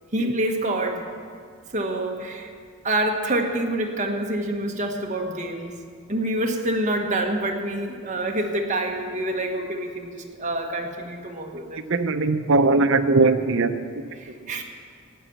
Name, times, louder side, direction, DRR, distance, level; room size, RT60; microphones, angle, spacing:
voice 1, 0.1-1.0 1.7-2.5 2.8-5.7 6.1-11.8 14.2-14.6, right 1 dB, 35° right, 2 dB, 1.5 m, -27 dB
voice 2, 11.9-14.0, right 3 dB, 65° right, 10 dB, 0.7 m, -20 dB
14.5 x 10.0 x 7.2 m, 2.1 s
head